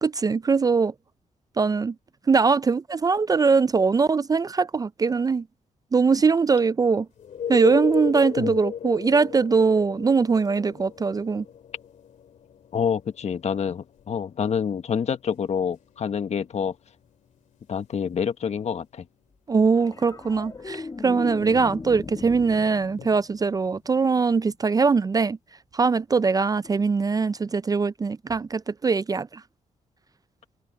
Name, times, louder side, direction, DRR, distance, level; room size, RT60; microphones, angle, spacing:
voice 1, 0.0-0.9 1.6-1.9 2.3-5.4 5.9-7.1 7.5-11.4 19.5-25.4 25.7-29.4, right 4 dB, 30° right, 0.4 m, -22 dB
sound 1, 7.2-18.7 23.0-23.1, left 8 dB, 75° left, 2.8 m, -36 dB
voice 2, 12.7-16.7 17.7-19.0, left 7 dB, 55° left, 1.2 m, -27 dB
sound 2, 19.7-24.2 26.6-26.8, left 3 dB, 30° left, 1.6 m, -39 dB
cardioid pair, 95°, 13 cm